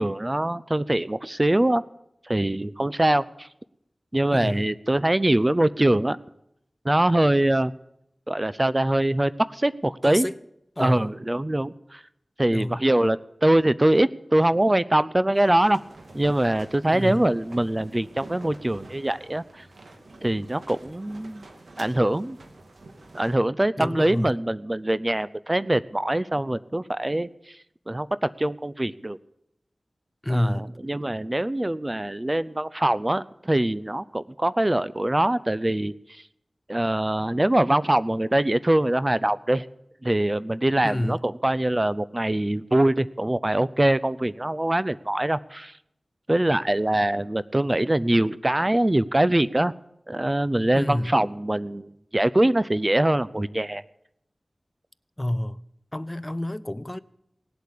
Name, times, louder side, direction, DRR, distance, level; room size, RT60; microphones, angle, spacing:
voice 1, 0.0-1.8 2.3-3.5 4.1-6.2 6.8-7.7 8.3-10.3 10.8-12.0 12.4-15.8 16.1-19.7 20.2-21.5 21.8-22.4 23.1-27.6 27.9-29.2 30.3-36.2 36.7-39.7 40.0-45.7 46.3-49.7 50.1-53.8, right 1 dB, 25° right, 0.5 m, -23 dB
voice 2, 4.3-4.7 10.0-10.4 10.8-11.1 12.5-12.8 16.9-17.2 23.8-24.4 30.2-30.7 40.8-41.2 50.7-51.2 55.2-55.6 55.9-57.0, left 1 dB, 20° left, 0.6 m, -28 dB
sound 1, 15.3-23.4, right 2 dB, 80° right, 2.1 m, -48 dB
18.0 x 8.2 x 8.5 m
wide cardioid pair, 45°, 0 cm